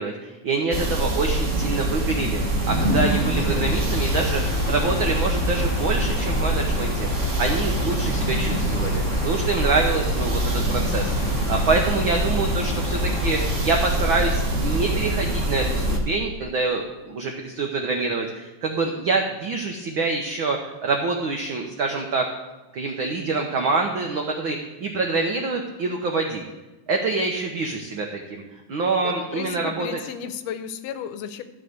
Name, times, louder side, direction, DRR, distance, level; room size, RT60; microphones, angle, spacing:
voice 1, 0.0-16.8 17.1-22.3 22.7-26.4 26.9-28.4 28.7-30.0, right 3 dB, 80° right, 2 dB, 1.1 m, -26 dB
sound 1, 0.7-16.0, right 1 dB, 40° right, 1.0 m, -24 dB
sound 2, 2.7-13.6, left 5 dB, 65° left, 1.6 m, -32 dB
voice 2, 29.0-31.4, left 8 dB, 85° left, 10 dB, 2.2 m, -34 dB
13.5 x 4.9 x 7.9 m, 1.1 s
omnidirectional pair, 3.6 m